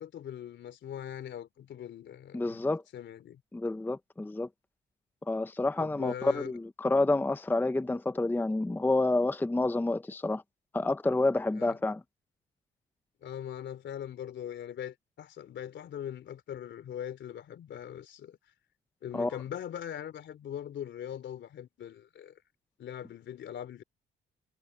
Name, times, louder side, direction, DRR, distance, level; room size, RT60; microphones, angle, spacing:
voice 1, 0.0-2.6 2.9-3.4 5.8-6.5 11.5-11.8 13.2-18.4 19.0-22.4 22.8-23.8, left 10 dB, 65° left, 3.3 m, -41 dB
voice 2, 2.3-2.8 3.5-4.5 5.3-10.4 10.7-12.0 19.1-19.3, left 2 dB, 10° left, 0.6 m, -29 dB
cardioid pair, 90°, 20 cm